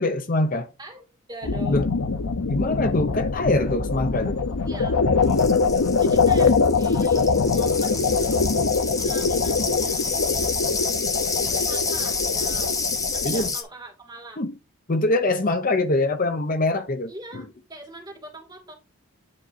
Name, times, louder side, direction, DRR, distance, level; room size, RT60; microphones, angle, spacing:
voice 1, 0.0-0.7 1.7-1.9 2.5-4.4 13.2-13.5 14.4-14.5 14.9-17.4, left 2 dB, 40° left, 0.7 m, -23 dB
voice 2, 0.8-1.9 4.6-5.0 6.0-10.6 11.4-12.8 13.1-14.4 17.1-18.7, right 1 dB, 20° right, 2.6 m, -42 dB
sound 1, 1.4-13.5, left 4 dB, 85° left, 0.7 m, -23 dB
sound 2, 5.2-13.6, left 4 dB, 15° left, 1.0 m, -29 dB
9.7 x 3.8 x 4.2 m
head